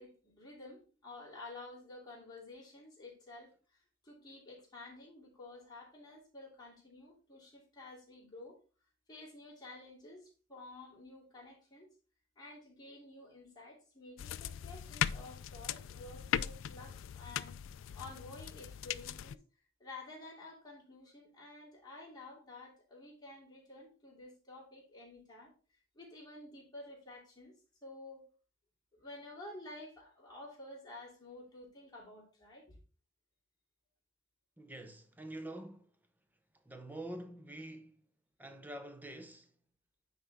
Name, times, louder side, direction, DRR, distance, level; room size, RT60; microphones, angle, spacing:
voice 1, 0.0-8.6 9.1-11.9 12.4-17.6 17.9-19.4 19.8-25.5 25.9-28.2 28.9-32.8, left 2 dB, 20° left, 3.0 m, -51 dB
sound 1, 14.2-19.4, left 9 dB, 65° left, 0.3 m, -39 dB
voice 2, 34.6-35.9 36.6-38.0 38.4-39.5, right 1 dB, 10° right, 0.7 m, -46 dB
9.3 x 4.2 x 3.6 m
head